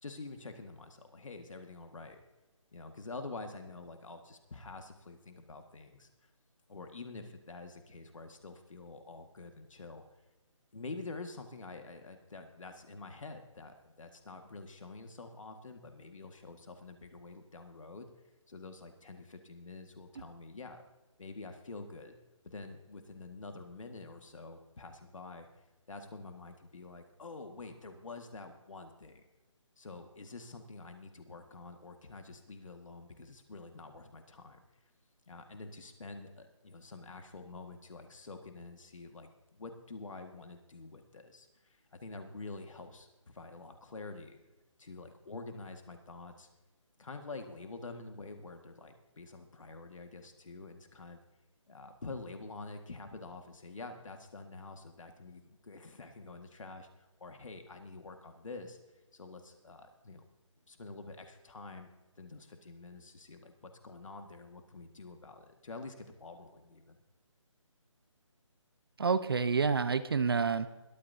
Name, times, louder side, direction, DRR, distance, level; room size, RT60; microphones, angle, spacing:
voice 1, 0.0-2.2 2.7-6.3 6.7-10.0 10.7-18.1 18.5-20.8 21.2-22.1 22.4-25.5 25.9-29.2 29.8-34.6 35.3-44.4 44.8-46.5 47.0-51.2 51.7-58.8 59.1-60.3 60.7-61.9 62.2-67.0, left 3 dB, 75° left, 5 dB, 1.8 m, -47 dB
voice 2, 69.0-70.7, right 5 dB, 45° right, 12 dB, 0.7 m, -28 dB
21.5 x 13.0 x 2.8 m, 1.1 s
hypercardioid pair, 170°, 17 cm